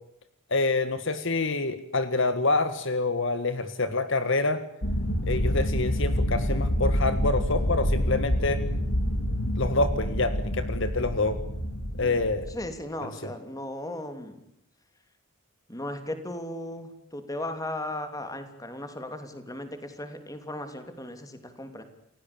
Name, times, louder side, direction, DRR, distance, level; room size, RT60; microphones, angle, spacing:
voice 1, 0.5-4.6 5.3-8.7 9.6-11.4 12.0-12.5 13.0-13.1, left 3 dB, 60° left, 11 dB, 1.7 m, -27 dB
sound 1, 4.8-12.7, equal, 90° left, 3.4 m, -27 dB
voice 2, 12.5-14.4 15.7-21.8, left 1 dB, 15° left, 8 dB, 3.1 m, -36 dB
29.5 x 16.5 x 8.7 m, 0.77 s
head